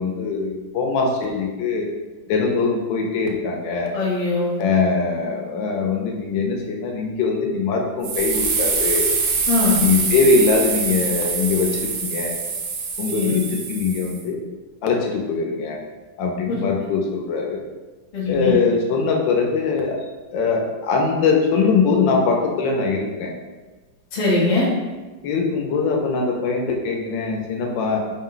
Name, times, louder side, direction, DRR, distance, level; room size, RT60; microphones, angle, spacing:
voice 1, 0.0-1.9 2.3-3.9 4.6-9.1 9.8-12.3 13.0-14.4 14.8-15.8 16.2-17.6 18.3-20.0 20.3-23.3 25.2-28.0, left 4 dB, 80° left, 0 dB, 1.3 m, -22 dB
voice 2, 3.9-4.6 9.5-9.8 13.1-13.3 16.5-16.6 18.1-18.5 24.1-24.7, left 3 dB, 35° left, -6 dB, 0.6 m, -21 dB
sound 1, 8.0-14.2, right 5 dB, 85° right, 1.4 m, -24 dB
4.4 x 2.1 x 3.8 m, 1.2 s
omnidirectional pair, 2.0 m